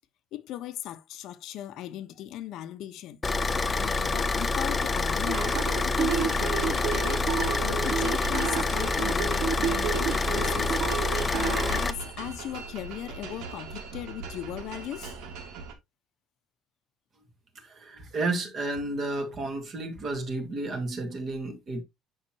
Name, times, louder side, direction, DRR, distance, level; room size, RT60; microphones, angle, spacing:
voice 1, 0.3-3.2 3.7-7.2 7.6-10.8 11.3-15.1, left 12 dB, 55° left, 1.0 m, -38 dB
Car / Idling, 3.2-11.9, left 3 dB, 15° left, 0.6 m, -27 dB
sound 1, 5.3-11.8, right 8 dB, 60° right, 1.8 m, -31 dB
sound 2, 6.1-15.7, right 5 dB, 90° right, 2.4 m, -41 dB
voice 2, 17.6-21.8, right 2 dB, 30° right, 2.0 m, -32 dB
9.8 x 5.9 x 2.9 m
cardioid pair, 175°, 0 cm